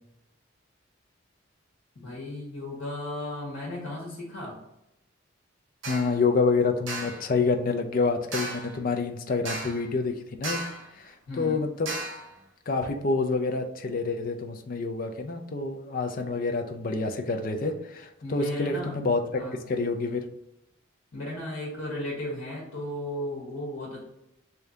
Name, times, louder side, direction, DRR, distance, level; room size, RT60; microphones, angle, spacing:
voice 1, 1.9-4.5 11.3-11.6 18.2-18.9 19.3-19.8 21.1-24.0, left 1 dB, 80° left, -3 dB, 1.1 m, -35 dB
sound 1, 5.8-6.2 6.9-7.3 8.3-8.8 9.5-9.9 10.4-10.9 11.9-12.3, right 2 dB, 65° right, 0.7 m, -34 dB
voice 2, 5.9-10.6 11.0-12.0 12.7-19.4 19.7-20.3, left 4 dB, 45° left, 5 dB, 0.4 m, -27 dB
3.3 x 2.7 x 3.6 m, 0.86 s
head